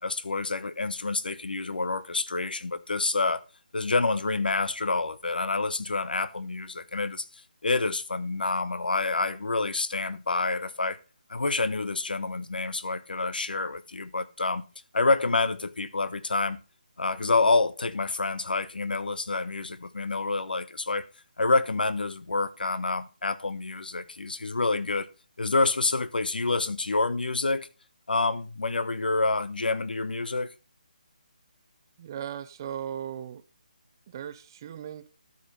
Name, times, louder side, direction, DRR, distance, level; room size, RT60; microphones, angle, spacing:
voice 1, 0.0-3.4 3.7-7.3 7.6-11.0 11.3-14.6 14.9-16.6 17.0-21.0 21.4-25.1 25.4-27.7 28.1-30.5, left 3 dB, 90° left, 1.2 m, -27 dB
voice 2, 32.0-33.4 34.1-35.1, right 9 dB, 25° right, 0.7 m, -37 dB
12.5 x 5.3 x 5.3 m
hypercardioid pair, 165°, 5 cm